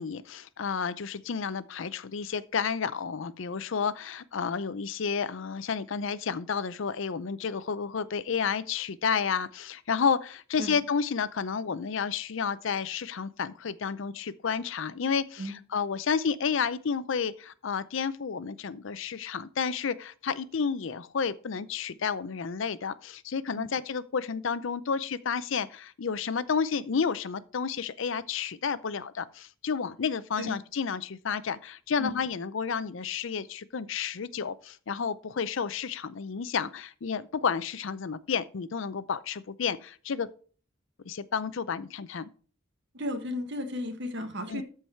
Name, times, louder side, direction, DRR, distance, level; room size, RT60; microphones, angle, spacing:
voice 1, 0.0-40.3 41.0-42.3 44.5-44.6, left 6 dB, 65° left, 0.5 m, -31 dB
voice 2, 42.9-44.6, left 1 dB, 60° right, 1.6 m, -34 dB
13.5 x 4.7 x 4.4 m
head